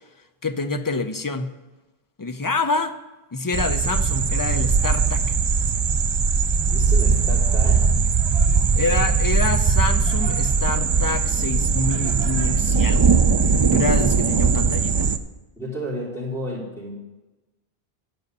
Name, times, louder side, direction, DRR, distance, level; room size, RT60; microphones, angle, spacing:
voice 1, 0.4-1.5 2.2-3.0 3.3-5.3 8.8-13.2 13.7-15.1, left 3 dB, 30° left, 7 dB, 0.4 m, -27 dB
sound 1, 3.5-15.2, right 5 dB, 50° right, 0.3 m, -20 dB
voice 2, 6.7-7.9 15.6-16.9, equal, 5° left, -8 dB, 4.0 m, -31 dB
11.0 x 5.3 x 6.7 m, 1.1 s
omnidirectional pair, 1.0 m